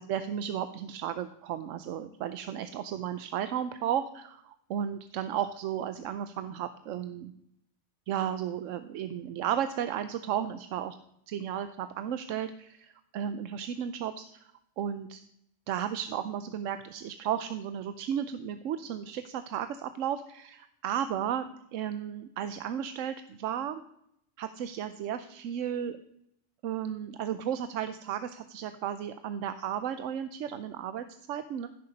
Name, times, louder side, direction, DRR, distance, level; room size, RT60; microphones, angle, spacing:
voice 1, 0.1-7.3 8.1-11.0 11.3-14.5 14.8-15.2 15.7-23.8 24.4-26.0 26.6-31.7, right 9 dB, 85° right, 11 dB, 1.0 m, -34 dB
15.5 x 6.8 x 5.3 m, 0.75 s
omnidirectional pair, 1.3 m